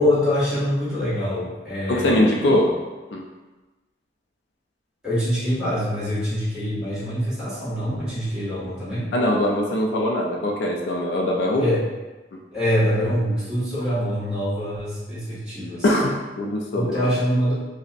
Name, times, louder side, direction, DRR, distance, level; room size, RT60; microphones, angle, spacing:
voice 1, 0.0-2.5 5.0-9.1 11.6-11.8 12.5-15.9 16.7-17.5, equal, 5° right, -12 dB, 1.4 m, -24 dB
voice 2, 1.9-2.8 3.1-3.2 9.1-11.7 12.3-12.4 15.8-17.1, left 1 dB, 65° left, 0 dB, 0.4 m, -22 dB
5.1 x 2.1 x 2.5 m, 1.2 s
head